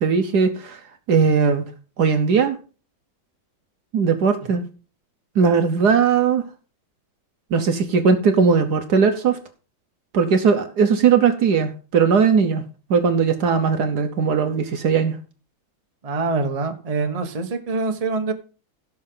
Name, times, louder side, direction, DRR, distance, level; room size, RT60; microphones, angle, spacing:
voice 1, 0.0-0.8 1.1-1.7 2.0-2.6 3.9-4.6 5.3-6.4 7.5-9.4 10.1-12.6 12.9-15.2, right 6 dB, 60° right, 7 dB, 1.3 m, -18 dB
voice 2, 16.0-18.3, right 3 dB, 25° right, 5 dB, 1.0 m, -25 dB
16.5 x 6.4 x 3.8 m, 0.37 s
omnidirectional pair, 2.2 m